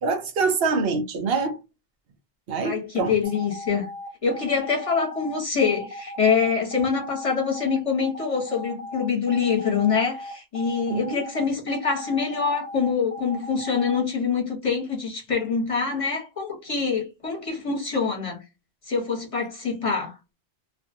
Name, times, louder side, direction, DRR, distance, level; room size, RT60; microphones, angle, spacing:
voice 1, 0.0-1.6 2.5-3.2 10.9-11.2, right 4 dB, 70° right, 0.9 m, -25 dB
voice 2, 2.6-3.9 4.2-18.4 18.9-20.2, left 5 dB, 35° left, 1.1 m, -25 dB
sound 1, 3.2-14.0, left 1 dB, 10° right, 0.4 m, -37 dB
2.5 x 2.4 x 2.5 m
omnidirectional pair, 1.1 m